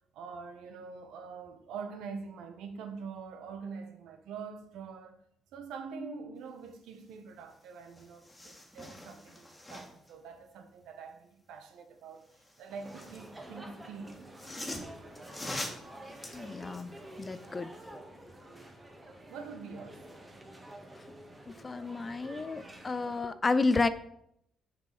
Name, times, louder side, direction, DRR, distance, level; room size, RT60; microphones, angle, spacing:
voice 1, 0.1-5.2 5.5-12.3 12.6-14.2 19.3-20.0, right 5 dB, 85° right, 1.1 m, -44 dB
sound 1, 7.5-7.6 7.9-10.1 12.2-13.3 14.1-17.5 17.9-18.0, left 1 dB, 15° left, 1.8 m, -43 dB
sound 2, 12.7-23.2, right 1 dB, 20° right, 1.5 m, -49 dB
voice 2, 16.3-16.9 17.2-17.7 21.5-23.9, left 3 dB, 30° left, 0.5 m, -31 dB
6.8 x 5.2 x 6.0 m
cardioid pair, 90°, 0 cm